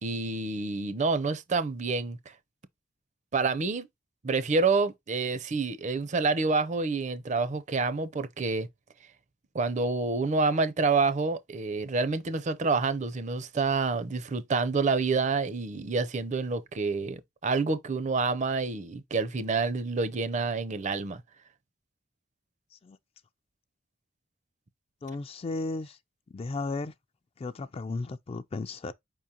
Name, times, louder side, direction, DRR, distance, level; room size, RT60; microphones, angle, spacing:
voice 1, 0.0-2.3 3.3-3.9 4.2-8.7 9.5-21.2, right 4 dB, 35° right, 0.5 m, -28 dB
voice 2, 25.0-26.0 26.3-26.9 27.4-28.9, left 3 dB, 30° left, 0.3 m, -34 dB
5.1 x 3.6 x 2.8 m
head